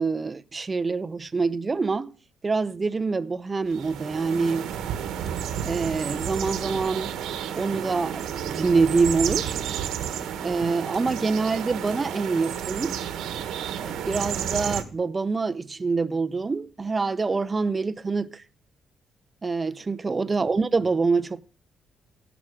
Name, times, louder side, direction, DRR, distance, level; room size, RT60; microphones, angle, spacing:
voice 1, 0.0-2.1 2.4-4.7 5.6-7.1 7.6-9.6 10.4-13.0 13.8-18.4 19.4-21.5, right 4 dB, 30° right, 0.6 m, -25 dB
sound 1, 3.7-14.8, right 9 dB, 85° right, 1.3 m, -31 dB
16.5 x 6.1 x 5.0 m
cardioid pair, 90°, 0 cm